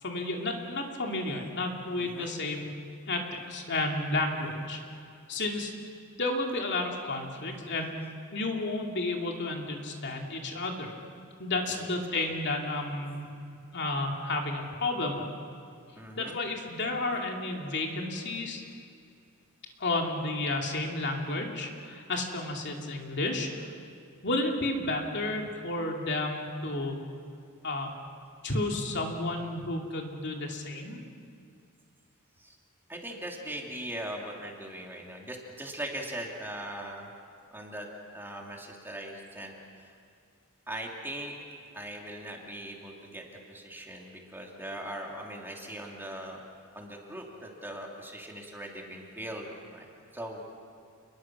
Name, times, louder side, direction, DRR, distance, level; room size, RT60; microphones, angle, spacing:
voice 1, 0.0-2.7 3.1-4.8 5.3-5.7 6.2-8.0 8.3-10.9 11.4-13.3 13.7-15.3 16.2-18.6 19.8-23.7 24.2-27.0 27.6-27.9 28.4-31.0, left 2 dB, 55° left, 1 dB, 2.7 m, -32 dB
voice 2, 2.0-2.3 11.7-12.3 16.0-16.4 32.4-32.6 32.9-37.1 37.5-37.9 38.1-39.9 40.7-41.3 41.7-46.4 46.7-50.4, right 1 dB, 10° right, -1 dB, 2.8 m, -40 dB
29.0 x 21.5 x 6.2 m, 2.5 s
head